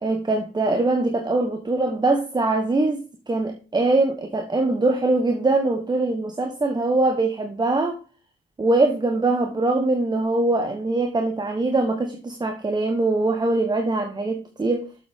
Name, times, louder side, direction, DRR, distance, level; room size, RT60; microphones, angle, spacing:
voice 1, 0.0-8.0 8.6-14.9, right 2 dB, 20° right, 1.1 m, -22 dB
7.4 x 7.2 x 3.6 m
cardioid pair, 90°, 20 cm